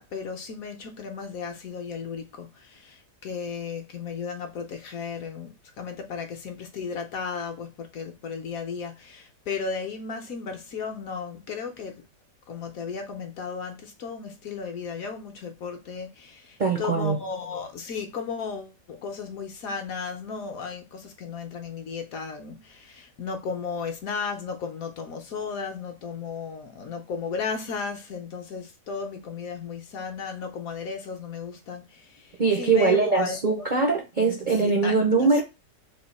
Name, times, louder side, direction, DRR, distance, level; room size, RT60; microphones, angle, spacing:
voice 1, 0.0-12.1 12.5-33.4 34.5-35.3, left 5 dB, 65° left, 1.0 m, -35 dB
voice 2, 16.6-17.2 32.4-35.4, right 4 dB, 60° right, 0.4 m, -22 dB
3.6 x 2.5 x 4.1 m
omnidirectional pair, 1.8 m